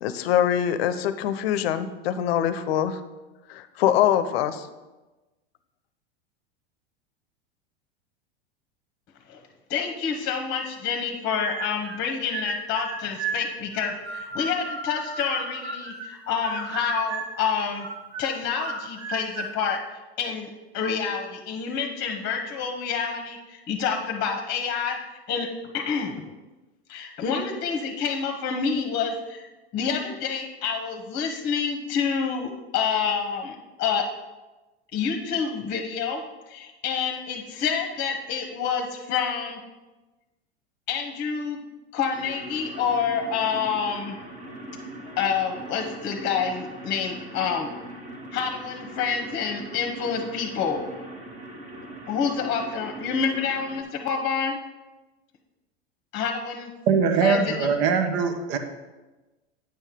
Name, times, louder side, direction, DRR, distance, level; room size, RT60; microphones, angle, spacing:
voice 1, 0.0-3.0 3.5-4.7, left 10 dB, 70° left, 12 dB, 0.7 m, -24 dB
voice 2, 9.7-17.9 18.2-19.8 20.2-20.5 20.7-25.0 25.3-25.5 25.7-26.2 26.9-29.4 29.7-34.1 34.9-36.2 36.5-39.6 40.9-41.6 41.9-44.2 45.2-47.7 48.3-50.8 52.1-54.6 56.1-56.7 57.2-57.7, left 6 dB, 35° left, 4 dB, 0.9 m, -28 dB
sound 1, 11.4-12.0 12.3-16.1 16.4-17.4 17.8-19.6, right 3 dB, 90° right, 1.1 m, -34 dB
sound 2, 42.1-53.8, right 1 dB, 25° right, 1.3 m, -40 dB
voice 3, 56.9-58.6, right 5 dB, 55° right, 7 dB, 1.0 m, -22 dB
8.9 x 5.5 x 3.7 m, 1.1 s
hypercardioid pair, 105°, 32 cm